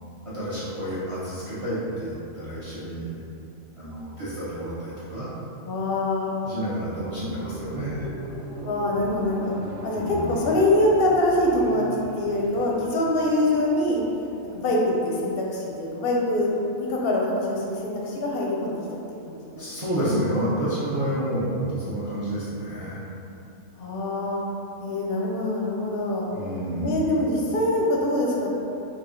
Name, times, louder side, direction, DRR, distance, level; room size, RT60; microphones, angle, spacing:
voice 1, 0.2-3.1 3.8-5.3 6.4-8.1 9.9-10.5 19.6-23.0 26.3-27.0, right 1 dB, 35° right, -11 dB, 0.6 m, -29 dB
voice 2, 5.6-6.3 8.6-9.5 9.8-14.0 14.5-18.7 19.3-19.7 19.9-20.2 23.8-24.4 24.8-26.3 26.8-28.5, left 1 dB, 60° left, -3 dB, 0.6 m, -24 dB
sound 1, 6.8-15.3, right 1 dB, 85° right, 1.1 m, -40 dB
3.3 x 2.7 x 3.7 m, 2.8 s
omnidirectional pair, 1.4 m